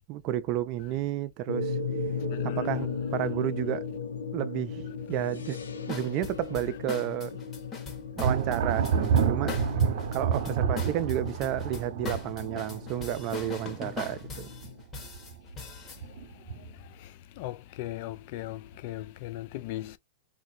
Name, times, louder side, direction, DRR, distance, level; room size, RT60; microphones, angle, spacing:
voice 1, 0.0-1.8 2.4-3.8 4.3-5.6 5.9-7.4 8.2-9.6 10.1-14.5, right 12 dB, 45° right, 0.4 m, -31 dB
sound 1, 1.5-14.8, left 5 dB, 90° left, 0.8 m, -37 dB
voice 2, 2.3-2.7 17.0-17.1 17.4-20.0, left 15 dB, 55° left, 0.4 m, -38 dB
sound 2, 5.9-16.0, left 4 dB, 25° left, 1.2 m, -41 dB
Thunder, 8.2-14.6 15.0-15.6 16.0-16.8, right 7 dB, 60° right, 0.9 m, -29 dB
3.1 x 2.6 x 2.7 m
hypercardioid pair, 110°, 0 cm